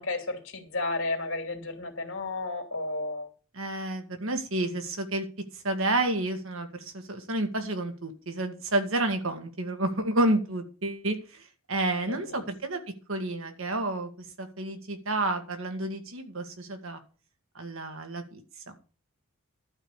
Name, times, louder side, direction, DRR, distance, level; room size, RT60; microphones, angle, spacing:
voice 1, 0.0-3.3 12.1-12.4, left 2 dB, 65° left, 5 dB, 2.6 m, -33 dB
voice 2, 3.5-5.3 5.5-12.8 13.1-17.0 17.6-18.4 18.7-18.8, right 2 dB, 70° right, 6 dB, 2.1 m, -30 dB
12.0 x 5.2 x 8.2 m, 0.37 s
head